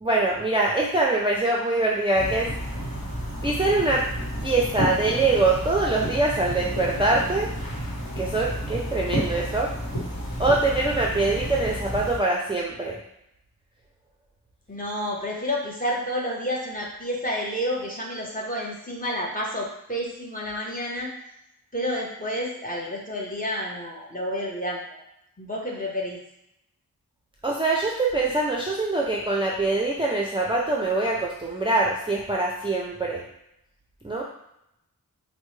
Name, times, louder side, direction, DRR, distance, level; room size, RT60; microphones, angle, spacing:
voice 1, 0.0-2.5 3.4-4.1 4.4-7.5 8.2-9.7 10.4-13.0 27.4-33.3 34.0-34.2, right 2 dB, 15° right, -3 dB, 0.4 m, -23 dB
sound 1, 2.1-12.2, equal, 70° left, 1.2 m, -31 dB
voice 2, 14.7-21.1 21.7-25.0 25.4-26.2, equal, 20° left, -3 dB, 0.9 m, -30 dB
4.3 x 2.1 x 3.1 m, 0.81 s
wide cardioid pair, 65°, 37 cm